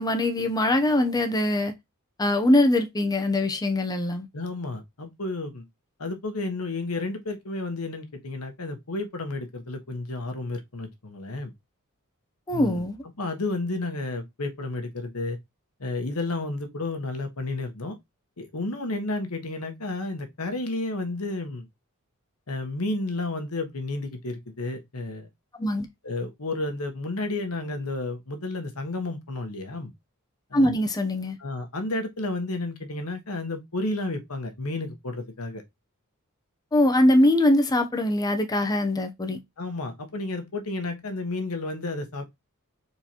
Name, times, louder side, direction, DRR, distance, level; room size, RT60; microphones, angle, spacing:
voice 1, 0.0-1.7 2.2-4.3 12.5-13.0 25.6-25.9 30.5-31.4 36.7-39.4, left 1 dB, 15° left, 0.6 m, -22 dB
voice 2, 4.3-5.6 6.0-11.5 12.5-12.8 13.2-15.4 15.8-18.0 18.4-21.7 22.5-25.3 26.0-29.9 30.5-30.7 31.4-35.6 39.6-42.4, left 2 dB, 85° left, 1.3 m, -31 dB
4.6 x 3.9 x 2.8 m
head